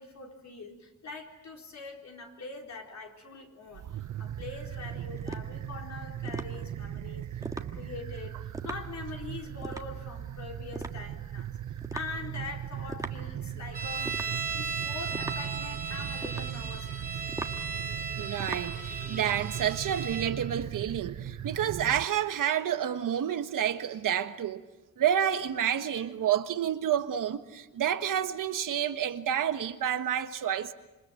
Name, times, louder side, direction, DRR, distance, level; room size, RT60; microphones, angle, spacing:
voice 1, 0.0-11.6 11.9-14.2 14.5-17.2, left 4 dB, 60° left, 4.2 m, -43 dB
sound 1, 3.7-22.1, right 11 dB, 65° right, 0.8 m, -38 dB
sound 2, 3.8-19.3, right 2 dB, 10° right, 1.5 m, -43 dB
sound 3, 13.7-20.3, right 5 dB, 30° right, 3.1 m, -36 dB
voice 2, 18.2-18.8 19.1-24.6 25.0-30.7, right 9 dB, 85° right, 1.5 m, -29 dB
27.5 x 25.5 x 7.7 m
wide cardioid pair, 125°, 31 cm